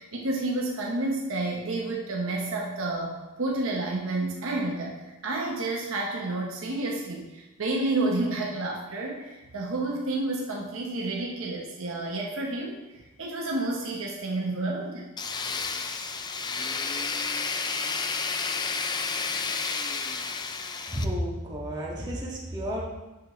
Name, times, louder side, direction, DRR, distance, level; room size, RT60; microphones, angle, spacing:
voice 1, 0.0-15.3 15.9-16.0 19.3-19.5, right 2 dB, 65° right, -1 dB, 0.9 m, -30 dB
Tools, 15.2-21.0, left 4 dB, 20° left, 0.3 m, -31 dB
voice 2, 20.9-22.8, equal, 20° right, -5 dB, 1.6 m, -31 dB
8.1 x 6.1 x 3.1 m, 1.0 s
head